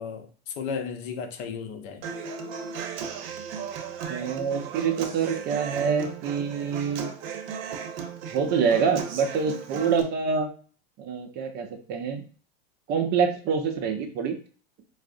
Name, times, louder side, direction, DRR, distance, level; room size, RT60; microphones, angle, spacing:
voice 1, 0.0-2.1, left 6 dB, 55° left, 6 dB, 0.7 m, -34 dB
Human voice / Acoustic guitar, 2.0-10.0, right 6 dB, 65° right, 0.7 m, -36 dB
voice 2, 4.1-7.1 8.3-10.5 11.0-12.2 12.9-14.3, right 6 dB, 35° right, 5 dB, 0.5 m, -26 dB
4.6 x 2.0 x 2.6 m, 0.40 s
supercardioid pair, 125°, 31 cm